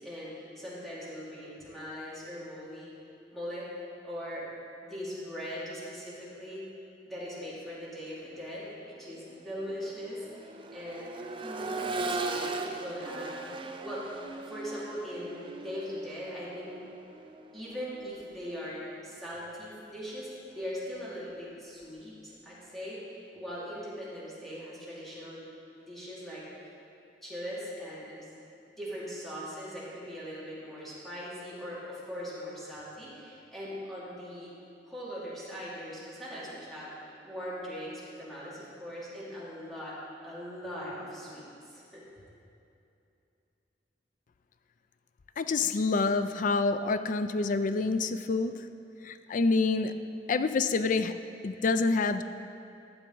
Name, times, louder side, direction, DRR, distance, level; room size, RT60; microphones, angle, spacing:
voice 1, 0.0-2.9 3.3-3.7 4.0-4.5 4.8-6.7 7.1-11.1 11.4-13.4 13.8-14.1 14.5-16.8 17.5-25.4 25.8-26.7 27.2-28.2 28.8-34.5 34.9-40.0 40.2-42.0, equal, ahead, -9 dB, 2.5 m, -40 dB
Accelerating revving vroom, 8.3-8.5 8.9-18.8 20.5-20.6, right 3 dB, 30° right, 0.5 m, -39 dB
voice 2, 45.4-48.5 49.0-49.9 50.3-51.1 51.4-52.2, left 3 dB, 45° left, 10 dB, 0.4 m, -27 dB
13.5 x 7.1 x 3.9 m, 2.7 s
head